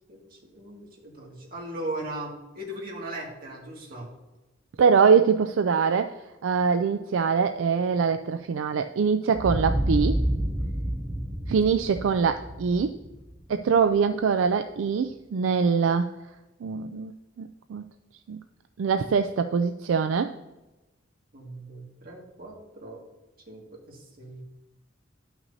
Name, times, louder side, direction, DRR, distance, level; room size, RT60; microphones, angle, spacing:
voice 1, 0.0-4.1 21.3-23.0 23.5-24.4, right 1 dB, 50° right, -2 dB, 2.0 m, -38 dB
voice 2, 4.8-6.1 6.4-10.2 11.5-12.9 13.5-16.1 16.6-17.1 17.4-17.8 18.3-18.4 18.8-20.3, right 5 dB, 80° right, 8 dB, 0.4 m, -23 dB
sound 1, 9.3-13.9, right 1 dB, 20° right, 0.9 m, -29 dB
11.5 x 5.9 x 2.7 m, 1.0 s
head